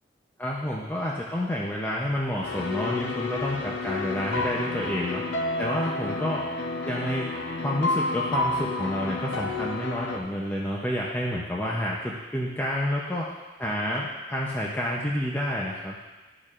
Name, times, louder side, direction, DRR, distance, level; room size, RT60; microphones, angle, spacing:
voice 1, 0.4-5.2 5.6-6.5 6.9-7.3 7.6-13.3 13.6-16.2, equal, 10° left, -4 dB, 0.6 m, -29 dB
sound 1, 2.4-10.2, left 2 dB, 85° left, 0.7 m, -30 dB
12.0 x 6.6 x 2.5 m, 1.2 s
head